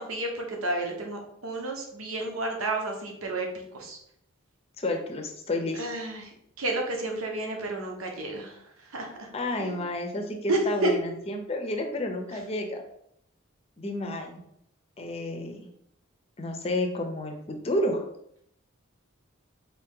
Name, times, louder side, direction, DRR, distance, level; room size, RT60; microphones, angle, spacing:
voice 1, 0.0-4.0 5.8-8.6 8.9-9.3 9.6-9.8 10.5-10.9, right 2 dB, 90° right, 1 dB, 0.9 m, -31 dB
voice 2, 4.8-5.8 9.3-12.8 13.8-14.4 15.0-15.7 16.4-18.0, left 1 dB, 30° left, 4 dB, 0.6 m, -30 dB
4.1 x 2.8 x 3.6 m, 0.72 s
head